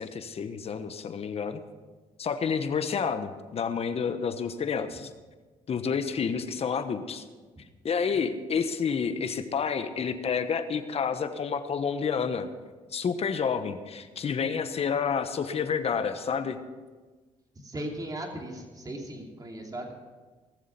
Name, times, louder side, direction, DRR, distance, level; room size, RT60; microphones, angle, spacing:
voice 1, 0.0-1.6 2.2-5.1 5.7-7.2 7.8-12.5 12.9-16.6, left 6 dB, 50° left, 9 dB, 1.2 m, -29 dB
voice 2, 17.6-19.9, right 1 dB, 25° right, 1 dB, 3.1 m, -37 dB
18.0 x 7.4 x 6.0 m, 1.3 s
cardioid pair, 80°, 13 cm